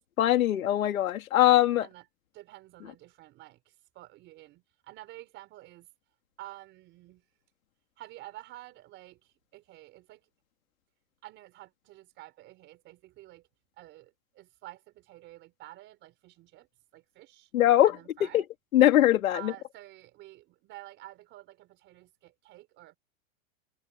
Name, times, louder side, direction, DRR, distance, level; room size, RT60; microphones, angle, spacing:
voice 1, 0.2-1.9 17.5-18.4 18.7-19.5, left 13 dB, 75° left, 3.2 m, -22 dB
voice 2, 2.3-5.9 6.4-7.2 8.0-10.2 11.2-13.5 13.8-16.7 16.9-17.5 17.8-18.4 19.3-23.0, right 16 dB, 25° right, 4.4 m, -50 dB
supercardioid pair, 165°, 42 cm